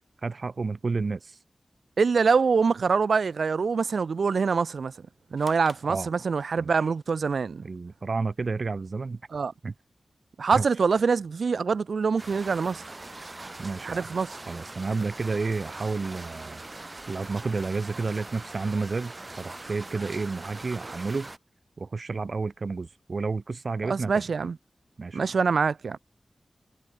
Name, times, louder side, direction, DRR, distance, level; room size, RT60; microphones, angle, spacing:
voice 1, 0.2-1.4 5.9-6.1 6.6-6.9 7.6-9.2 9.6-9.7 10.5-10.7 13.6-14.1 14.5-16.6 17.1-21.3 21.8-24.3 25.0-25.3, right 4 dB, 55° right, 0.8 m, -31 dB
voice 2, 2.0-4.9 5.3-7.7 9.3-9.5 10.4-12.8 13.8-14.4 23.8-24.6 25.1-26.0, right 5 dB, 90° right, 1.1 m, -25 dB
sound 1, 5.4-6.8, left 4 dB, 75° left, 3.2 m, -51 dB
sound 2, 12.2-21.4, right 2 dB, 30° right, 2.3 m, -42 dB
wide cardioid pair, 105°, 0 cm